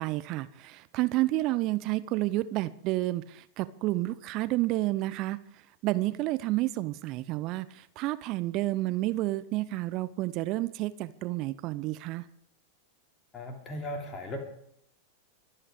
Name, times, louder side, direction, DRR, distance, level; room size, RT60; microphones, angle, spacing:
voice 1, 0.0-5.4 5.8-12.3, right 17 dB, 40° right, 15 dB, 0.7 m, -30 dB
voice 2, 13.3-14.4, left 1 dB, 25° left, 2 dB, 3.1 m, -37 dB
24.5 x 8.8 x 5.1 m, 0.71 s
figure-of-eight pair, 90°, 0 cm